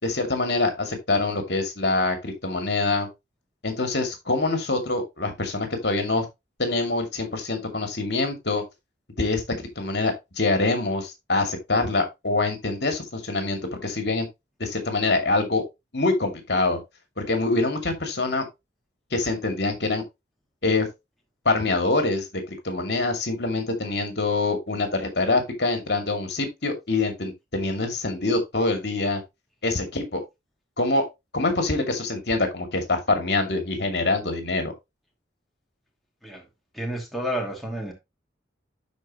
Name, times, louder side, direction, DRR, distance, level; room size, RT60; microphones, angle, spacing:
voice 1, 0.0-3.1 3.6-6.3 6.6-8.6 9.2-14.3 14.6-15.6 15.9-16.8 17.2-18.5 19.1-20.0 20.6-20.9 21.4-29.2 29.6-30.2 30.8-31.1 31.3-34.7, left 3 dB, 65° left, 2.4 m, -25 dB
voice 2, 36.7-37.9, equal, ahead, 2.5 m, -30 dB
12.0 x 4.6 x 2.9 m
head